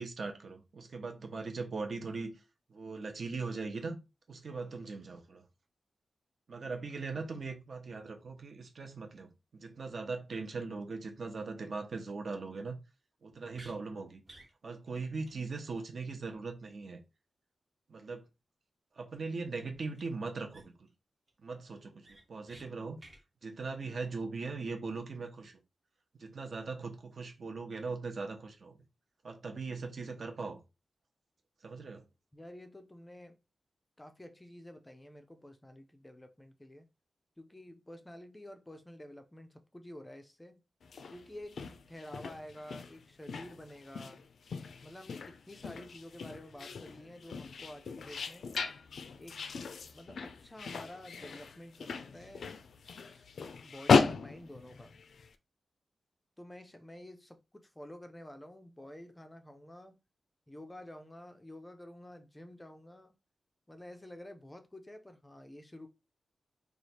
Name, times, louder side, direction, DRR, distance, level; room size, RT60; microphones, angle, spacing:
voice 1, 0.0-2.4 2.7-4.0 4.3-5.4 6.5-12.8 13.2-14.2 14.6-17.0 17.9-18.2 19.0-20.9 21.4-23.0 23.4-25.6 26.2-28.8 29.2-30.6 31.6-32.0, right 4 dB, 55° right, 0.8 m, -40 dB
sound 1, 13.5-13.8 14.2-14.5 14.9-15.0 15.2-15.4 15.6-15.8 19.9-20.0 20.5-20.9 21.3-21.4 21.7-22.6 23.0-23.2, right 2 dB, 25° right, 1.0 m, -55 dB
voice 2, 32.3-33.4 34.0-36.9 37.4-40.6 41.1-41.6 41.9-44.3 44.8-48.5 49.2-49.5 49.9-52.6 52.8-53.2 53.6-54.9 56.4-60.0 60.5-63.1 63.7-65.9, left 1 dB, 10° left, 0.4 m, -50 dB
sound 2, 40.8-55.3, left 5 dB, 80° left, 0.4 m, -35 dB
3.1 x 2.3 x 4.1 m
wide cardioid pair, 150°, 0 cm